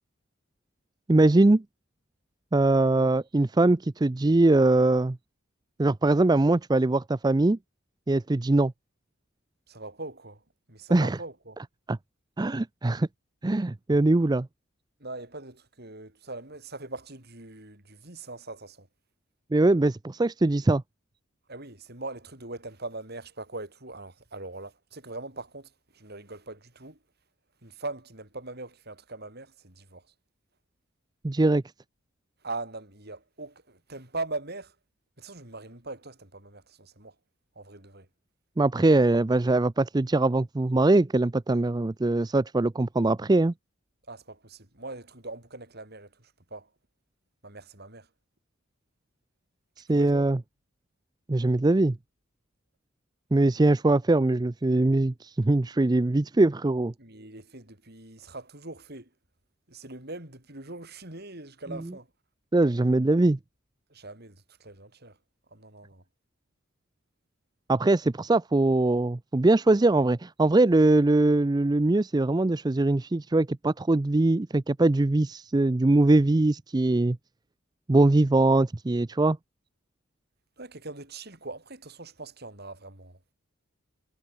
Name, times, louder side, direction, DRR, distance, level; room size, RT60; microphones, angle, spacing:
voice 1, 1.1-1.6 2.5-5.2 5.8-7.6 8.1-8.7 10.9-11.2 11.9-12.0 12.4-13.1 13.4-14.5 19.5-20.8 31.2-31.6 38.6-43.5 49.8-50.4 51.3-52.0 53.3-56.9 62.5-63.4 67.7-77.2 77.9-79.4, right 2 dB, 20° right, 0.4 m, -22 dB
voice 2, 9.7-10.4 10.7-11.6 15.0-18.9 21.5-27.0 27.6-30.0 32.4-34.7 35.2-37.1 37.6-38.1 44.1-46.7 47.4-48.1 49.9-50.3 57.0-59.1 59.7-62.1 63.9-65.2 65.5-66.0 80.6-83.3, right 2 dB, 50° right, 5.4 m, -41 dB
head